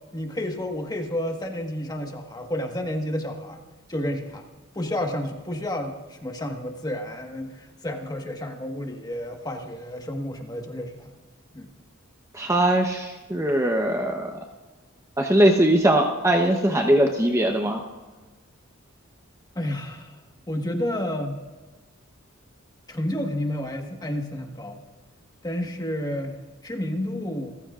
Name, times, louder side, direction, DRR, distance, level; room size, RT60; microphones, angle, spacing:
voice 1, 0.1-3.6 3.9-4.4 4.7-11.0 11.5-11.7 19.5-20.1 20.5-21.4 22.9-24.8 25.4-27.5, left 1 dB, 20° left, 3 dB, 1.5 m, -30 dB
voice 2, 12.3-14.3 15.2-17.8, right 1 dB, 15° right, 2 dB, 0.9 m, -21 dB
28.0 x 15.0 x 2.5 m, 1.3 s
head